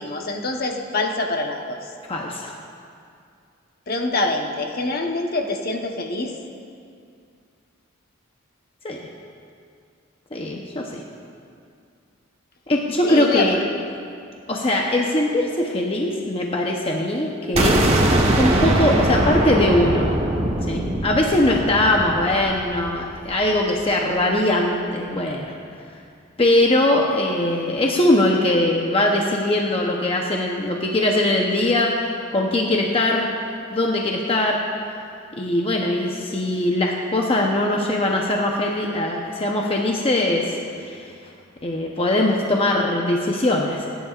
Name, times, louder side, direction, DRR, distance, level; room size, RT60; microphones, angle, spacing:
voice 1, 0.0-1.8 3.9-6.3 13.0-13.7, left 2 dB, 50° left, 2 dB, 1.0 m, -25 dB
voice 2, 2.1-2.5 8.8-9.0 10.3-11.0 12.7-13.6 14.5-17.8 18.4-20.1 20.7-25.5 26.4-31.9 32.3-33.3 33.7-34.6 35.4-41.1 41.6-43.9, left 1 dB, 30° left, -1 dB, 0.8 m, -21 dB
sound 1, 17.6-23.3, right 1 dB, 30° right, 1.2 m, -21 dB
27.5 x 10.0 x 2.5 m, 2.4 s
head